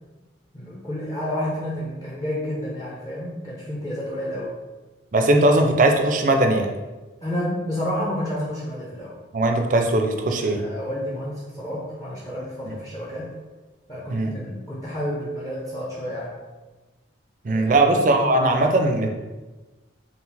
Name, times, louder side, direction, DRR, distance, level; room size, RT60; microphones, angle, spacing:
voice 1, 0.5-4.6 7.2-9.2 10.4-13.3 13.9-16.4 17.5-17.7, equal, 20° left, -7 dB, 0.6 m, -30 dB
voice 2, 5.1-6.7 9.3-10.6 12.6-12.7 14.1-14.3 17.4-19.1, right 2 dB, 40° right, 4 dB, 0.4 m, -19 dB
3.8 x 2.4 x 4.1 m, 1.2 s
head